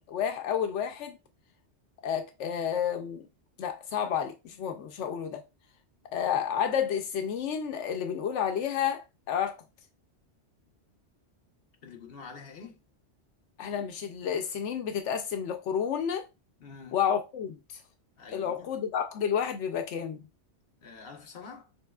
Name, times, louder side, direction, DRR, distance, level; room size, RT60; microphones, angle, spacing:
voice 1, 0.1-1.2 2.0-3.3 3.6-5.4 6.1-9.6 13.6-16.2 16.9-17.8 18.3-20.2, left 8 dB, 85° left, 0.9 m, -30 dB
voice 2, 11.8-12.8 16.6-17.0 18.2-18.6 20.8-21.7, left 5 dB, 55° left, 1.2 m, -46 dB
7.0 x 3.1 x 2.3 m
omnidirectional pair, 1.2 m